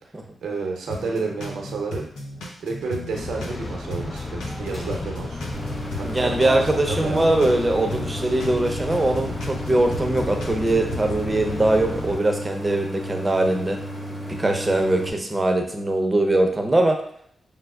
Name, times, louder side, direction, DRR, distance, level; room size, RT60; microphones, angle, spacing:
voice 1, 0.4-2.1 2.6-5.5 6.0-6.6 6.9-7.7 14.1-14.2, right 4 dB, 80° right, 1 dB, 0.7 m, -30 dB
sound 1, 0.9-3.6 3.9-7.6 7.9-11.1, left 1 dB, 90° left, 0.7 m, -36 dB
sound 2, 3.1-12.2, left 2 dB, 45° left, 0.7 m, -33 dB
Idling, 5.5-15.1, equal, 10° left, 1.0 m, -34 dB
voice 2, 6.0-13.8 14.4-17.0, right 2 dB, 30° right, 4 dB, 0.7 m, -21 dB
6.0 x 2.0 x 2.3 m, 0.67 s
supercardioid pair, 50°, 0 cm